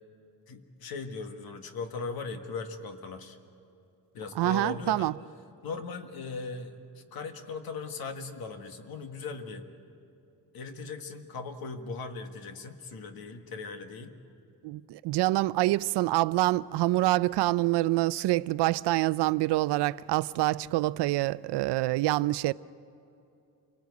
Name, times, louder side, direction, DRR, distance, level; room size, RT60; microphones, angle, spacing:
voice 1, 0.5-3.4 4.1-5.1 5.6-9.7 10.5-14.1, left 4 dB, 65° left, 1.7 m, -38 dB
voice 2, 4.4-5.1 14.6-22.5, right 18 dB, 85° right, 0.5 m, -26 dB
27.5 x 19.0 x 8.3 m
cardioid pair, 150°, 39 cm